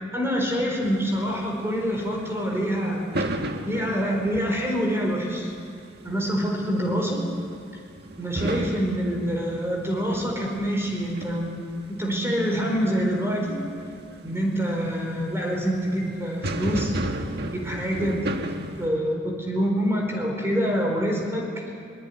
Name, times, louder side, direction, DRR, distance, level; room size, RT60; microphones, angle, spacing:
voice 1, 0.1-3.0 3.6-5.5 6.0-7.2 8.2-11.6 12.0-13.6 14.2-16.9 17.5-18.2 18.5-21.5, equal, 15° right, 0 dB, 4.6 m, -26 dB
sound 1, 0.8-18.9, right 1 dB, 60° right, 1.7 m, -35 dB
24.0 x 20.5 x 9.7 m, 2.4 s
head